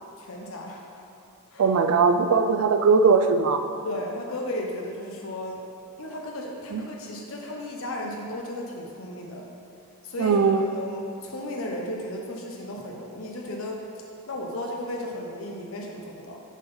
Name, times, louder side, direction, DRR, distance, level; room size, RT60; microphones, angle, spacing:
voice 1, 0.2-1.0 1.5-1.7 3.8-5.7 6.0-9.5 10.0-10.4 10.7-16.4, left 1 dB, 70° left, 0 dB, 0.8 m, -35 dB
voice 2, 1.6-3.6 6.7-6.8 10.2-10.7, right 5 dB, 85° right, 7 dB, 0.4 m, -20 dB
7.2 x 3.9 x 5.4 m, 2.5 s
head